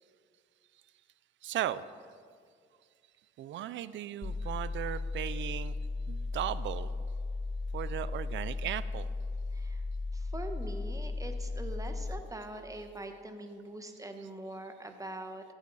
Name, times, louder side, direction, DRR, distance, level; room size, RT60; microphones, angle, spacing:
voice 1, 1.4-2.1 3.4-5.8 6.1-6.9 7.7-9.1 14.2-14.3, right 12 dB, 70° right, 16 dB, 0.5 m, -37 dB
sound 1, 4.2-12.2, left 3 dB, 15° left, 0.3 m, -36 dB
voice 2, 10.1-15.5, right 1 dB, 15° right, 6 dB, 1.2 m, -43 dB
14.5 x 10.0 x 4.1 m, 2.1 s
cardioid pair, 90°, 20 cm